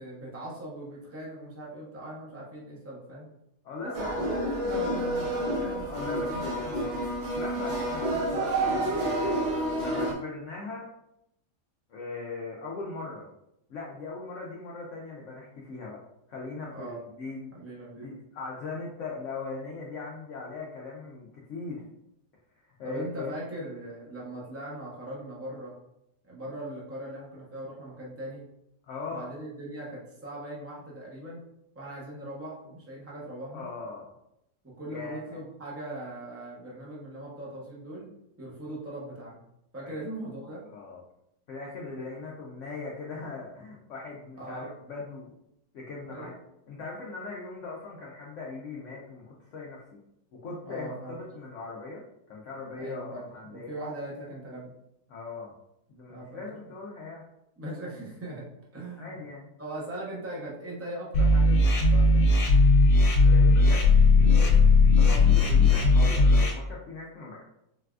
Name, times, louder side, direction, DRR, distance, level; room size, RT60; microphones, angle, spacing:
voice 1, 0.0-3.3 3.8-6.9 16.7-17.0 17.5-18.1 22.8-25.8 26.3-28.4 29.1-31.4 31.7-33.7 34.6-38.1 38.4-39.4 39.7-40.6 44.4-44.7 46.1-46.4 50.6-51.1 52.8-54.7 56.1-56.4 57.6-58.5 58.7-59.2 59.6-62.5, right 1 dB, 25° right, -5 dB, 0.3 m, -40 dB
voice 2, 3.6-4.4 5.9-6.7 7.3-9.3 9.8-10.9 11.9-13.3 13.7-16.0 16.3-17.5 18.0-21.9 22.8-23.3 28.9-29.2 33.5-34.1 34.9-35.2 39.8-40.0 40.7-41.0 41.5-45.3 45.7-46.3 46.7-49.8 50.3-52.0 52.3-53.7 55.1-55.5 55.9-57.2 58.9-59.5 63.2-64.6 64.9-67.4, left 3 dB, 65° left, -3 dB, 0.8 m, -39 dB
sound 1, 3.9-10.1, right 1 dB, 50° right, 0.7 m, -29 dB
sound 2, 61.1-66.5, left 3 dB, 90° left, 1.2 m, -18 dB
4.0 x 2.2 x 2.4 m, 0.80 s
omnidirectional pair, 1.7 m